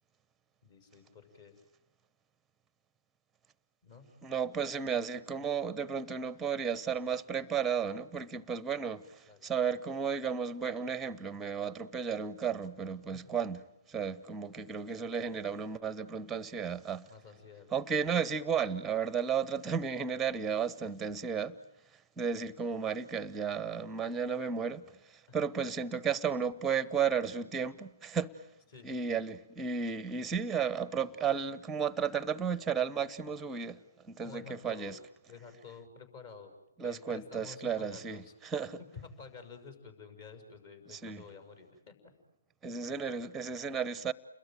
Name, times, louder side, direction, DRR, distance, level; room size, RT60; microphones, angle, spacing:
voice 1, 0.6-1.5 3.8-4.1 4.9-5.1 9.3-9.5 13.1-13.3 17.1-17.7 25.3-25.4 25.6-25.7 28.7-28.9 34.2-35.0 35.3-36.5 36.8-38.3 39.0-42.0, left 5 dB, 35° left, 6.3 m, -51 dB
voice 2, 4.2-17.1 17.7-21.6 21.9-28.5 28.8-35.0 36.8-38.8 40.9-41.2 42.6-44.1, right 6 dB, 10° right, 1.0 m, -34 dB
30.0 x 21.5 x 9.1 m
figure-of-eight pair, 145°, 0 cm